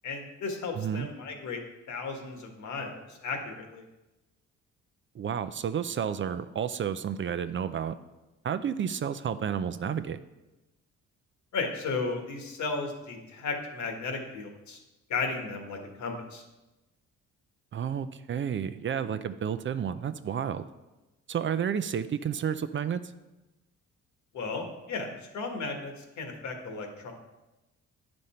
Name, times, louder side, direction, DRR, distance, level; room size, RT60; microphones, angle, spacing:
voice 1, 0.0-1.6 1.9-3.8 11.5-14.8 15.1-16.4 24.3-27.1, left 4 dB, 70° left, 3 dB, 1.6 m, -35 dB
voice 2, 0.7-1.1 5.1-7.9 8.4-10.2 17.7-20.6 21.3-23.1, right 8 dB, 40° right, 12 dB, 0.5 m, -31 dB
9.6 x 5.3 x 4.3 m, 1.0 s
cardioid pair, 90°, 30 cm